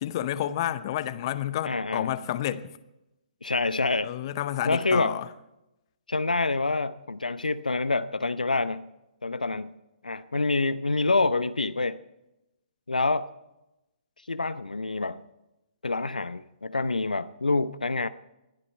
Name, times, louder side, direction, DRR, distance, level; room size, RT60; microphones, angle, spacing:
voice 1, 0.0-2.7 4.0-5.3, left 12 dB, 35° left, 0.7 m, -30 dB
voice 2, 1.6-2.1 3.4-4.1 4.6-5.2 6.1-8.9 9.2-9.7 10.0-12.0 12.9-13.3 14.3-15.2 15.8-18.1, left 3 dB, 75° left, 0.6 m, -27 dB
20.5 x 13.5 x 4.4 m
figure-of-eight pair, 130°, 4 cm